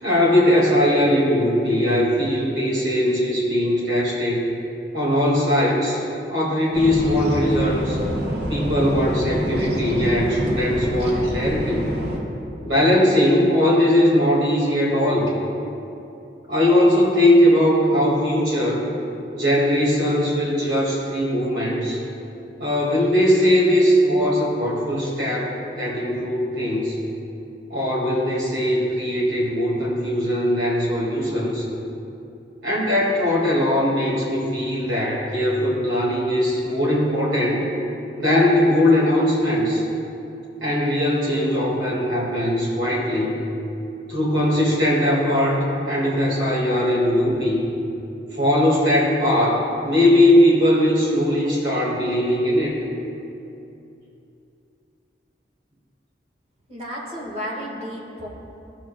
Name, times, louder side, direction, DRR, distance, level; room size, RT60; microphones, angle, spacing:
voice 1, 0.0-4.4 4.9-6.0 6.3-8.0 8.5-11.8 12.6-15.3 16.5-18.9 19.3-22.0 22.6-27.0 27.7-31.7 32.6-37.7 38.2-39.8 40.6-43.4 44.1-47.6 48.3-52.8, left 1 dB, 85° right, -6 dB, 2.1 m, -20 dB
sound 1, 6.7-12.2, equal, 65° right, 1.5 m, -27 dB
voice 2, 56.7-58.3, equal, 35° right, -3 dB, 1.6 m, -32 dB
15.0 x 7.3 x 2.3 m, 2.7 s
head